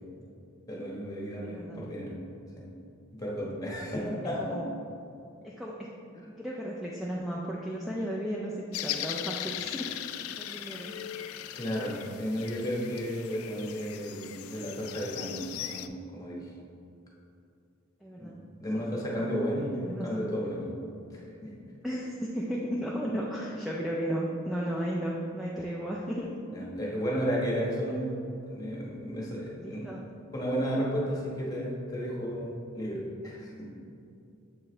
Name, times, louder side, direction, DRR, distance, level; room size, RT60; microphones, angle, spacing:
voice 1, 0.7-2.1 2.6-2.7 3.1-4.6 11.5-16.5 18.2-18.3 18.6-20.7 21.1-21.5 26.5-28.1 28.5-29.8 30.3-33.7, equal, 15° left, -5 dB, 1.1 m, -33 dB
voice 2, 1.4-1.9 3.8-4.7 5.4-5.9 6.1-10.0 10.4-11.0 18.0-18.4 18.7-18.8 19.2-19.3 19.8-20.2 21.8-26.3 29.6-30.1, equal, ahead, -4 dB, 0.3 m, -35 dB
sound 1, 8.7-15.9, left 12 dB, 80° left, 0.3 m, -39 dB
7.2 x 4.7 x 3.2 m, 2.6 s
head